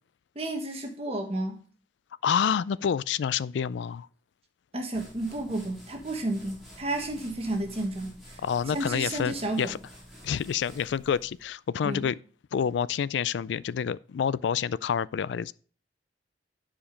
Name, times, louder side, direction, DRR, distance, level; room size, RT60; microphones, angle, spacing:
voice 1, 0.3-1.6 4.7-8.4 8.7-9.7 11.8-12.1, right 1 dB, 35° right, 1.3 m, -32 dB
voice 2, 2.2-4.1 8.4-9.8 10.2-12.2 12.5-15.5, left 7 dB, 75° left, 0.3 m, -28 dB
sound 1, 4.9-11.4, equal, ahead, 3.5 m, -50 dB
9.9 x 5.1 x 5.1 m
head